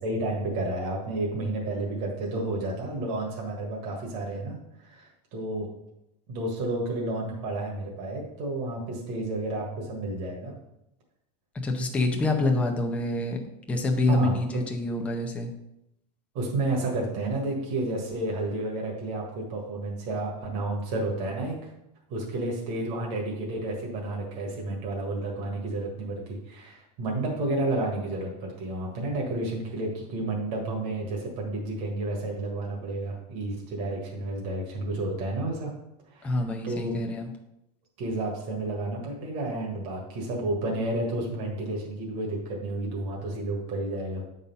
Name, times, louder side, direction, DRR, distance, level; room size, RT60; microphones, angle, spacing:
voice 1, 0.0-5.7 6.3-10.5 14.1-14.4 16.3-21.6 22.1-35.7 36.1-36.3 36.6-36.9 38.0-44.2, right 2 dB, 45° right, -1 dB, 1.6 m, -31 dB
voice 2, 11.6-13.4 13.7-15.5 36.2-37.3, left 2 dB, 5° left, 1 dB, 0.5 m, -26 dB
8.4 x 4.1 x 5.4 m, 0.85 s
supercardioid pair, 175°, 21 cm